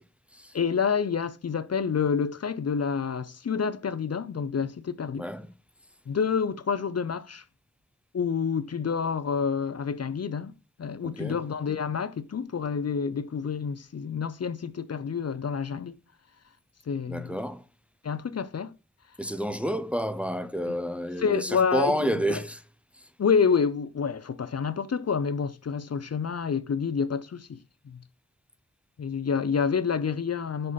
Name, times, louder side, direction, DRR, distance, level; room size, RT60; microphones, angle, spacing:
voice 1, 0.5-5.3 6.1-7.5 8.1-10.5 10.8-16.0 16.9-17.4 18.0-18.7 20.7-20.8 21.2-22.4 23.2-27.6 27.8-28.0 29.0-30.7, left 6 dB, 60° left, 0.5 m, -28 dB
voice 2, 5.2-5.5 11.2-11.4 17.1-17.6 19.2-22.6, equal, 5° right, 0.5 m, -29 dB
5.4 x 5.2 x 4.0 m
wide cardioid pair, 55°, 29 cm